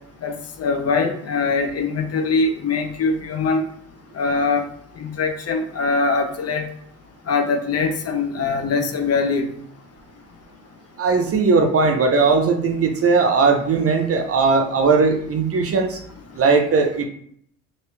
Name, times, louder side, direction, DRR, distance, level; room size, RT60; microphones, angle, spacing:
voice 1, 0.2-3.6 4.1-4.6 5.0-6.7 7.3-9.5, left 4 dB, 40° left, 5 dB, 0.7 m, -22 dB
voice 2, 11.0-16.0 16.4-17.1, right 4 dB, 40° right, 5 dB, 0.6 m, -18 dB
2.8 x 2.8 x 3.3 m, 0.66 s
hypercardioid pair, 65°, 38 cm